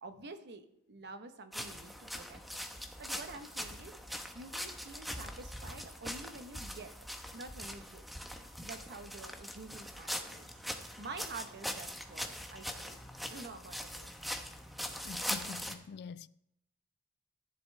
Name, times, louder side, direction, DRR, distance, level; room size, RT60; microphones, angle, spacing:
voice 1, 0.0-2.7 3.0-4.0 4.3-6.9 7.3-8.0 8.6-10.5 11.0-13.0 13.3-14.1, right 3 dB, 50° right, 1.0 m, -48 dB
sound 1, 1.5-15.7, equal, ahead, 0.8 m, -42 dB
voice 2, 15.0-16.3, left 5 dB, 50° left, 0.3 m, -45 dB
14.0 x 10.5 x 3.3 m
head